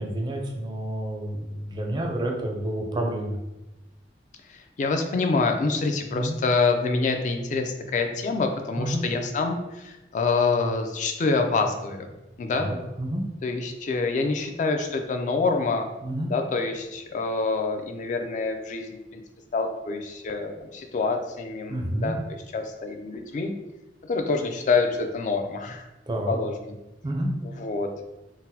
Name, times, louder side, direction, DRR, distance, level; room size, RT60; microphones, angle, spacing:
voice 1, 0.0-3.4 6.1-6.4 8.8-9.1 12.5-13.2 16.0-16.3 21.7-22.2 26.1-26.4 27.0-27.3, right 1 dB, 25° right, 1 dB, 0.4 m, -29 dB
voice 2, 4.5-12.1 12.4-12.7 13.4-15.8 16.3-19.2 19.5-22.2 22.5-23.5 24.0-25.8 26.3-26.5 27.4-27.9, left 4 dB, 45° left, 5 dB, 0.3 m, -26 dB
3.8 x 2.0 x 2.7 m, 0.98 s
head